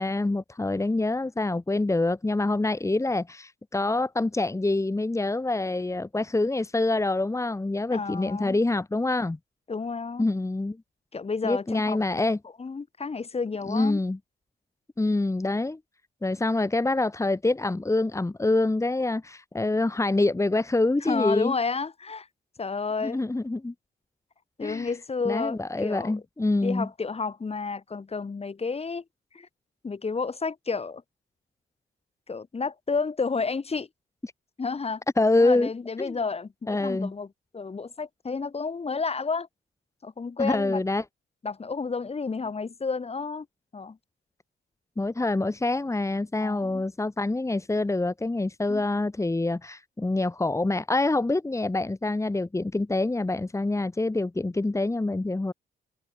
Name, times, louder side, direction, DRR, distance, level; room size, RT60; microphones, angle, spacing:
voice 1, 0.0-9.4 10.2-10.8 11.4-12.4 13.7-14.2 15.0-15.8 16.2-21.5 23.0-23.7 24.6-24.9 25.2-26.9 35.2-35.7 36.0-36.2 36.7-37.1 40.4-41.0 45.0-55.5, left 2 dB, 15° left, 2.8 m, -26 dB
voice 2, 7.9-8.6 9.7-10.3 11.1-12.2 12.6-14.0 21.0-22.3 22.6-23.2 24.6-26.1 26.6-29.0 29.3-29.5 29.8-31.0 32.3-33.9 34.6-35.0 35.3-37.3 37.5-39.5 40.0-40.8 41.4-43.5 43.7-44.0 46.4-46.8 48.7-48.8, left 4 dB, 30° left, 3.4 m, -31 dB
open air
cardioid pair, 90°, 20 cm